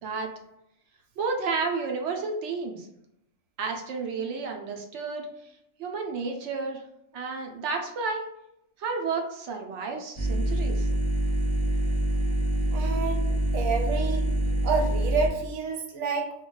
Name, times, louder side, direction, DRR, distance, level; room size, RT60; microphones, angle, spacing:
voice 1, 1.2-2.9 3.6-5.3 5.8-6.8 7.1-8.3 8.8-10.9, right 4 dB, 65° right, 3 dB, 0.8 m, -31 dB
sound 1, 10.2-15.3, right 1 dB, 35° left, 0.7 m, -26 dB
voice 2, 12.7-14.3 14.6-16.3, right 5 dB, 90° right, 3 dB, 1.0 m, -29 dB
2.3 x 2.2 x 3.7 m, 0.80 s
omnidirectional pair, 1.4 m